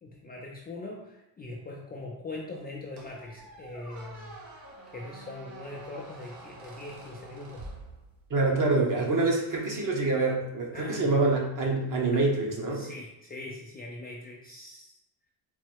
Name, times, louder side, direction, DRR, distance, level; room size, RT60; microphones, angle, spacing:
voice 1, 0.0-4.4 4.9-7.7 10.7-11.3 12.1-12.2 12.7-15.0, left 2 dB, 20° left, -2 dB, 0.4 m, -41 dB
Squeak, 3.0-8.5, right 2 dB, 70° right, 1.1 m, -47 dB
voice 2, 8.3-12.9, right 3 dB, 40° right, -1 dB, 1.1 m, -26 dB
4.1 x 2.0 x 4.5 m, 0.87 s
cardioid pair, 115°, 48 cm